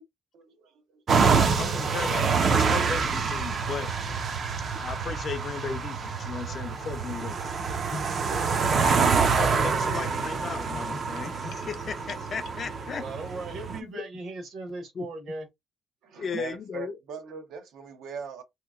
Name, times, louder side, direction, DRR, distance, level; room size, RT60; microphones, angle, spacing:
voice 1, 0.3-1.3 4.5-4.6 6.5-6.9 16.0-18.4, right 6 dB, 85° right, 0.8 m, -41 dB
sound 1, 1.1-13.8, right 5 dB, 40° right, 0.4 m, -26 dB
voice 2, 1.5-3.9 4.8-7.4 9.2-13.0 13.9-14.0 15.0-15.1 16.2-17.0, left 6 dB, 35° left, 0.3 m, -36 dB
Gurgling / Bathtub (filling or washing), 7.9-12.9, left 4 dB, 65° left, 0.7 m, -45 dB
voice 3, 13.0-15.5, right 2 dB, 55° right, 1.1 m, -38 dB
3.4 x 2.8 x 2.3 m
cardioid pair, 170°, 0 cm